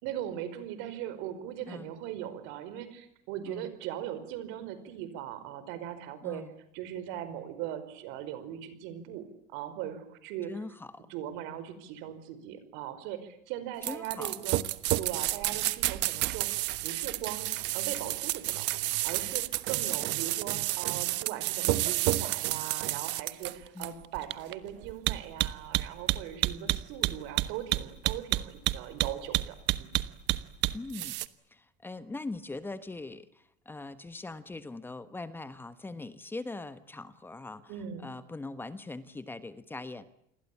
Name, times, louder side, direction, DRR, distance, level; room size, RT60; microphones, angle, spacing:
voice 1, 0.0-6.4 6.7-9.2 9.5-10.5 11.1-14.6 15.0-16.5 16.8-18.7 19.0-29.9 37.7-38.1, right 11 dB, 80° right, 12 dB, 5.1 m, -39 dB
voice 2, 6.2-6.6 10.5-11.1 13.8-14.4 19.9-20.3 23.7-24.0 26.5-26.8 30.7-31.2 31.5-40.0, left 3 dB, 10° left, 12 dB, 1.3 m, -42 dB
sound 1, 13.8-31.3, right 17 dB, 65° right, 1.2 m, -30 dB
28.5 x 21.5 x 8.6 m, 0.74 s
cardioid pair, 155°, 20 cm